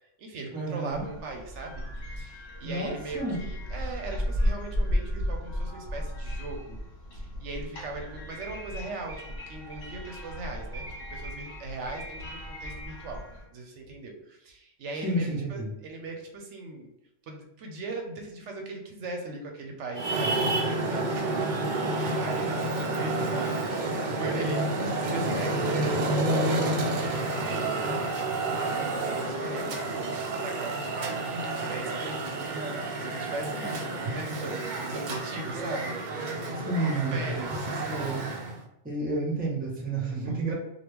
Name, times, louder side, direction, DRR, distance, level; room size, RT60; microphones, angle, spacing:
voice 1, 0.0-6.8 7.1-13.2 13.5-16.9 17.3-27.9 28.5-33.9 34.1-36.4 36.9-38.0 40.2-40.4, right 3 dB, 75° right, 2 dB, 0.9 m, -39 dB
voice 2, 0.5-1.0 2.6-3.4 15.0-15.7 36.6-37.2 37.9-38.2 38.8-40.5, right 2 dB, 10° right, -4 dB, 0.7 m, -30 dB
sound 1, 0.9-13.4, equal, 50° left, 1.2 m, -34 dB
Traffic noise roadway noise, 19.9-38.6, right 2 dB, 60° right, 0.5 m, -29 dB
2.9 x 2.4 x 3.4 m, 0.83 s
omnidirectional pair, 1.3 m